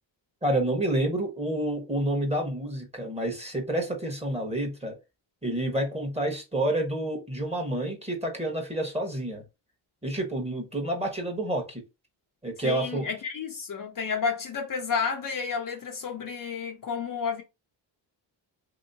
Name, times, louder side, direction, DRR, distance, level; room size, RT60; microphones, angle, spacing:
voice 1, 0.4-5.0 5.4-9.4 10.0-11.8 12.4-13.1, right 1 dB, 15° right, 1.2 m, -29 dB
voice 2, 12.6-17.4, left 6 dB, 45° left, 0.7 m, -31 dB
3.0 x 2.9 x 2.7 m
cardioid pair, 85°, 46 cm